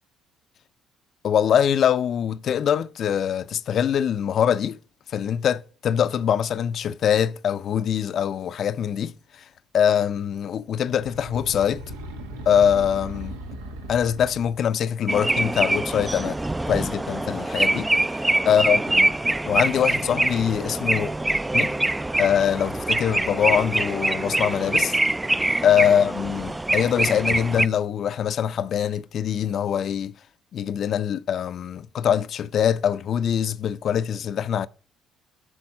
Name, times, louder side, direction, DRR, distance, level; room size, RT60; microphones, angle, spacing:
voice 1, 1.2-4.8 5.1-9.2 9.7-11.8 12.5-13.4 13.9-16.4 16.7-17.9 18.5-19.1 19.4-21.1 21.5-21.7 22.2-24.9 25.6-30.1 30.5-34.7, left 9 dB, 55° left, 0.5 m, -23 dB
sound 1, 10.8-14.7, equal, 80° right, 1.2 m, -38 dB
sound 2, 15.1-27.7, right 2 dB, 15° right, 0.4 m, -24 dB
11.0 x 4.4 x 6.2 m
hypercardioid pair, 50°, 0 cm